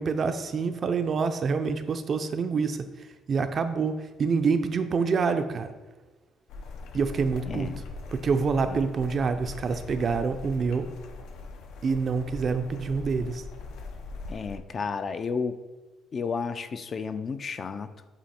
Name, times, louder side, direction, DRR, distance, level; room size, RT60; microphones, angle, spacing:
voice 1, 0.0-2.8 3.3-5.7 6.9-7.7 8.1-10.9 11.8-13.4, right 5 dB, 40° right, 9 dB, 0.4 m, -26 dB
sound 1, 6.5-14.6, left 3 dB, 80° left, 0.6 m, -41 dB
voice 2, 7.5-7.8 8.6-8.8 14.3-15.6 16.1-17.9, left 5 dB, 35° left, 10 dB, 0.3 m, -32 dB
8.4 x 2.8 x 4.2 m, 1.2 s
cardioid pair, 135°, 0 cm